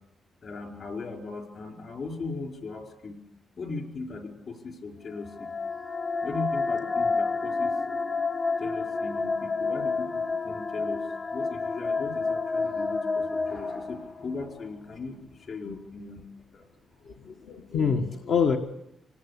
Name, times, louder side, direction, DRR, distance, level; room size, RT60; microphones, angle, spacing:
voice 1, 0.4-3.2 3.6-5.5 6.2-8.2 8.6-17.0, left 3 dB, 50° left, 3 dB, 5.1 m, -38 dB
sound 1, 5.2-14.4, left 4 dB, 35° left, 1.3 m, -29 dB
voice 2, 17.1-18.6, left 6 dB, 75° left, 3 dB, 1.6 m, -26 dB
26.5 x 19.0 x 8.5 m, 0.85 s
cardioid pair, 125°, 0 cm